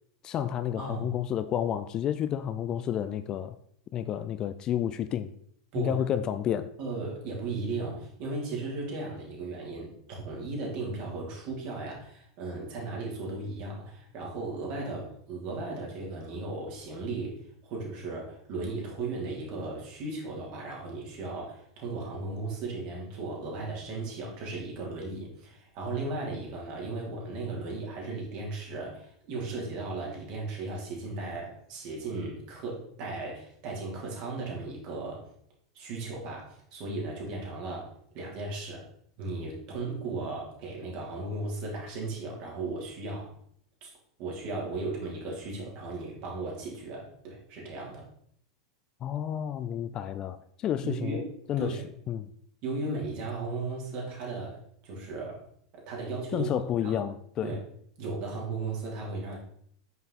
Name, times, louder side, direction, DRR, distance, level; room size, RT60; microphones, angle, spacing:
voice 1, 0.2-3.6 3.9-5.3 5.8-6.7 49.0-51.2 51.5-51.8 52.1-52.3 56.3-57.6, left 10 dB, 30° left, 0.4 m, -30 dB
voice 2, 0.8-1.1 5.7-6.0 6.8-35.2 35.7-38.8 39.2-43.3 43.8-43.9 44.2-48.1 50.8-51.3 51.6-51.8 52.6-55.4 55.7-56.5 56.8-57.0 57.4-57.6 58.0-59.4, right 3 dB, 45° right, 3.0 m, -36 dB
9.2 x 5.6 x 4.0 m
figure-of-eight pair, 85°, 2 cm